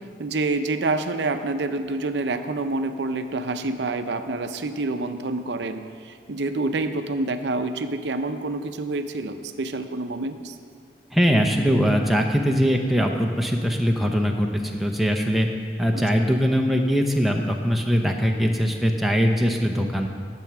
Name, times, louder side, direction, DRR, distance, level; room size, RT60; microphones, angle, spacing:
voice 1, 0.2-10.6 15.9-16.0, right 2 dB, 80° right, 8 dB, 0.6 m, -27 dB
voice 2, 11.1-15.5 15.8-20.1, equal, ahead, 2 dB, 0.7 m, -21 dB
10.5 x 7.6 x 5.9 m, 2.1 s
head